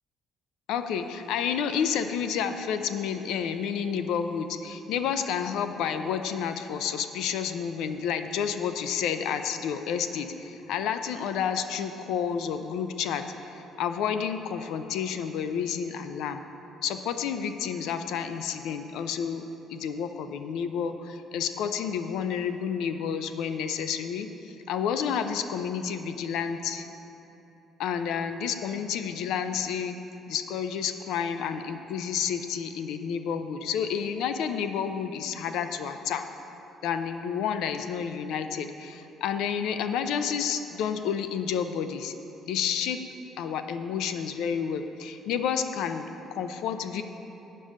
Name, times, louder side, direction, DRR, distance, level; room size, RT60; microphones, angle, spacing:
voice 1, 0.7-16.4 16.8-19.4 19.7-24.3 24.7-26.9 27.8-29.9 30.3-36.2 36.8-42.1 42.5-43.0 43.4-47.0, left 7 dB, 75° left, 8 dB, 0.5 m, -30 dB
8.6 x 5.4 x 6.5 m, 3.0 s
cardioid pair, 180°, 0 cm